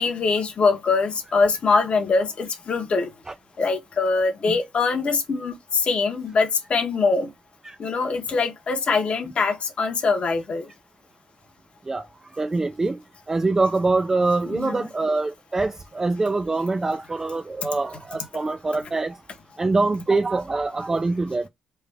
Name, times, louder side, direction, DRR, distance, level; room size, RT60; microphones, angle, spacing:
voice 1, 0.0-3.1 3.6-7.3 7.8-10.7 14.5-14.9, left 4 dB, 40° left, 1.0 m, -23 dB
voice 2, 12.3-13.0 13.3-19.1 19.6-21.5, right 3 dB, 15° right, 0.3 m, -24 dB
3.4 x 2.4 x 3.3 m
cardioid pair, 115°, 3 cm